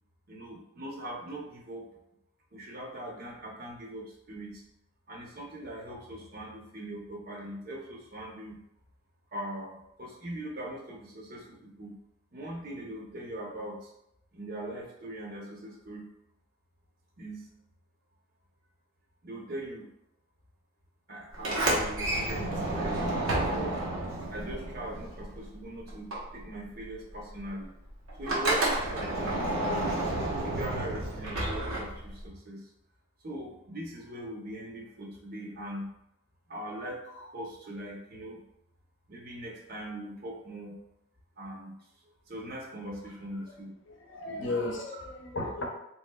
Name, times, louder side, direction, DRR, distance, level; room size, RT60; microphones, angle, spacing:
voice 1, 0.3-1.9 2.5-4.7 5.1-8.6 9.3-11.9 12.3-13.9 14.3-16.1 17.2-17.5 19.2-19.9 21.1-23.8 24.3-27.7 28.2-29.9 30.4-32.7 33.2-35.9 36.5-38.4 39.1-40.8 41.4-41.8 42.3-43.7 44.2-44.5 44.9-45.0, right 1 dB, 45° right, -1 dB, 0.7 m, -41 dB
Sliding door, 21.3-25.6 25.9-32.3, right 1 dB, 85° right, 0.9 m, -31 dB
voice 2, 43.9-45.6, left 2 dB, 60° left, 1 dB, 0.6 m, -34 dB
3.6 x 3.0 x 2.2 m, 0.80 s
head